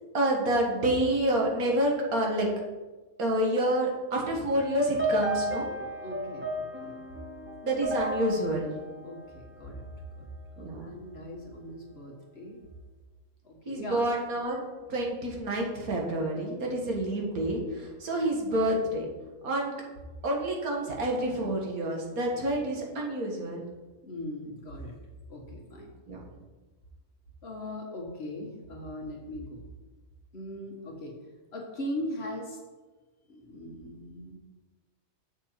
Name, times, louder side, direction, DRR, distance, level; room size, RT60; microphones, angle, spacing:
voice 1, 0.1-2.5 3.2-5.7 7.6-8.7 10.6-10.9 13.7-19.1 19.4-19.7 20.2-23.7 26.1-26.2, right 1 dB, 80° right, -1 dB, 1.9 m, -28 dB
sound 1, 4.6-9.9, equal, 15° right, 0.5 m, -33 dB
voice 2, 6.0-7.0 9.0-12.6 13.4-14.1 24.0-24.9 25.3-25.9 27.4-29.7 30.3-31.1 31.5-32.6 33.3-34.4, left 1 dB, 45° left, -1 dB, 1.7 m, -40 dB
7.5 x 6.3 x 4.4 m, 1.2 s
omnidirectional pair, 1.5 m